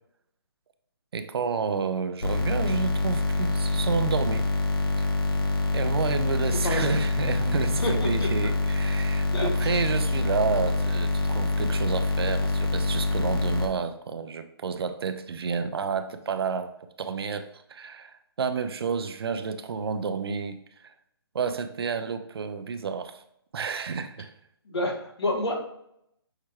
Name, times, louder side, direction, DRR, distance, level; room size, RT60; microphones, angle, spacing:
voice 1, 1.1-4.5 5.0-5.1 5.7-16.7 17.0-20.9 21.3-23.2 23.5-24.3, right 5 dB, 70° right, 9 dB, 0.5 m, -30 dB
sound 1, 2.2-13.7, left 3 dB, 60° left, 1.0 m, -26 dB
voice 2, 6.6-6.9 7.8-8.5 9.3-9.5 9.7-9.8 24.6-25.6, left 1 dB, 80° left, 1 dB, 1.2 m, -29 dB
5.6 x 2.3 x 3.1 m, 0.74 s
hypercardioid pair, 155°, 13 cm